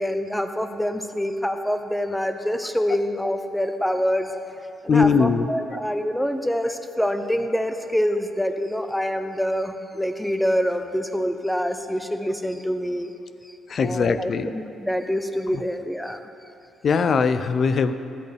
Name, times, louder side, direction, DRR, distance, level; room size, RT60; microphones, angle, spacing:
voice 1, 0.0-4.3 4.8-13.1 13.8-16.2, equal, 5° left, 7 dB, 0.8 m, -26 dB
voice 2, 4.9-5.5 13.7-14.5 15.5-15.6 16.8-17.9, left 5 dB, 50° left, 11 dB, 0.5 m, -20 dB
16.0 x 11.0 x 3.4 m, 2.7 s
cardioid pair, 90°, 0 cm